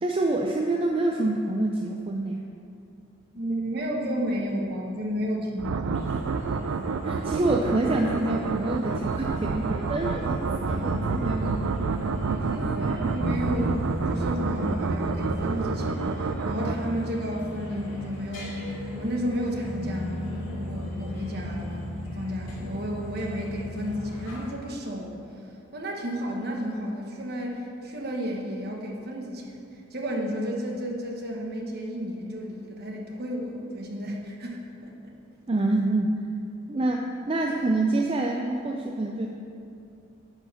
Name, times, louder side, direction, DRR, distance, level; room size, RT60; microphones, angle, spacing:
voice 1, 0.0-2.4 7.1-10.4 10.7-11.8 12.3-13.1 35.5-36.3 36.7-39.3, right 2 dB, 25° right, 1 dB, 0.4 m, -27 dB
voice 2, 3.3-6.4 12.4-18.5 18.9-21.8 22.1-25.2 25.7-35.1, equal, 50° right, 0 dB, 1.2 m, -32 dB
sound 1, 5.6-17.3, right 4 dB, 85° right, 0.4 m, -29 dB
sound 2, 5.9-24.5, left 1 dB, 75° left, 2.0 m, -35 dB
11.0 x 4.6 x 5.8 m, 2.6 s
head